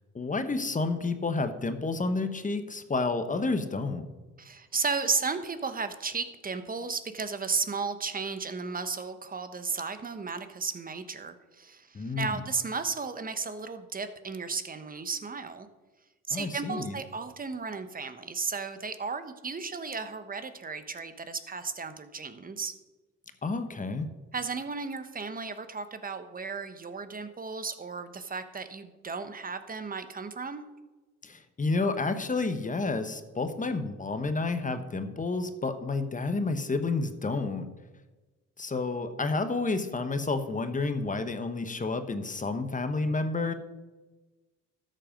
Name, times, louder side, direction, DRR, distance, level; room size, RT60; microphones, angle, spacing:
voice 1, 0.1-4.0 11.9-12.4 16.3-17.0 23.4-24.1 31.2-37.7 38.6-43.5, left 3 dB, 25° left, 9 dB, 1.1 m, -30 dB
voice 2, 4.4-15.7 16.3-22.7 24.3-30.6, right 4 dB, 30° right, 10 dB, 1.1 m, -34 dB
13.0 x 7.8 x 5.2 m, 1.2 s
cardioid pair, 90°, 30 cm